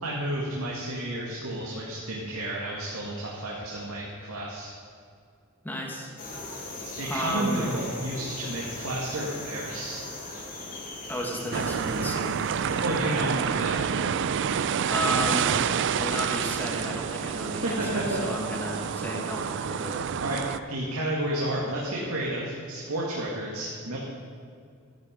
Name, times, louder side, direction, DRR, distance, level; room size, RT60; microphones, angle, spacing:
voice 1, 0.0-4.7 6.4-6.6 7.0-10.0 12.7-13.8 17.5-18.2 20.2-20.4 20.7-24.0, right 1 dB, 85° right, -4 dB, 2.0 m, -31 dB
voice 2, 5.6-6.1 7.0-7.7 11.1-12.5 14.9-15.6 15.9-20.0, equal, 10° left, 0 dB, 1.9 m, -33 dB
sound 1, 6.2-13.7, left 2 dB, 40° left, 2.4 m, -40 dB
sound 2, 11.5-20.6, right 7 dB, 60° right, 0.4 m, -28 dB
14.0 x 10.5 x 5.2 m, 2.2 s
head